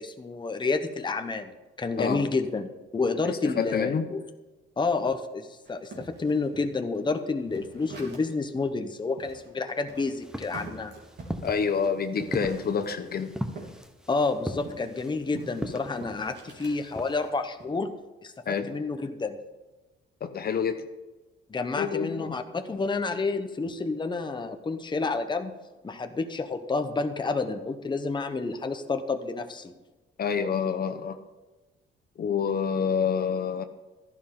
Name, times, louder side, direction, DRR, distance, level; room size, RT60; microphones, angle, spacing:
voice 1, 0.0-2.7 2.9-4.2 4.8-10.9 14.1-17.9 18.2-19.4 21.5-25.5 25.8-29.7, left 3 dB, 25° left, 7 dB, 0.9 m, -29 dB
voice 2, 3.4-4.1 11.4-13.4 18.5-18.7 20.2-20.8 21.8-22.4 30.2-31.2 32.2-33.6, left 6 dB, 50° left, 8 dB, 1.0 m, -27 dB
sound 1, 5.7-8.5 8.8-8.9 9.2-13.8 14.1-16.8 17.3-17.7, right 3 dB, 60° right, 3.3 m, -46 dB
sound 2, 10.2-17.3, equal, 5° right, 1.1 m, -38 dB
13.0 x 11.0 x 3.8 m, 1.2 s
cardioid pair, 90°, 20 cm